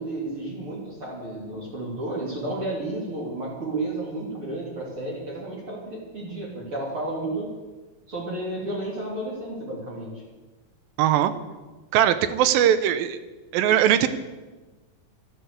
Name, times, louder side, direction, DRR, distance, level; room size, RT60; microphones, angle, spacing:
voice 1, 0.0-7.5 8.1-10.2, right 2 dB, 40° right, -4 dB, 3.7 m, -32 dB
voice 2, 11.0-11.3 11.9-13.2 13.5-14.1, right 10 dB, 85° right, 12 dB, 2.6 m, -20 dB
13.5 x 10.5 x 8.0 m, 1.2 s
omnidirectional pair, 4.0 m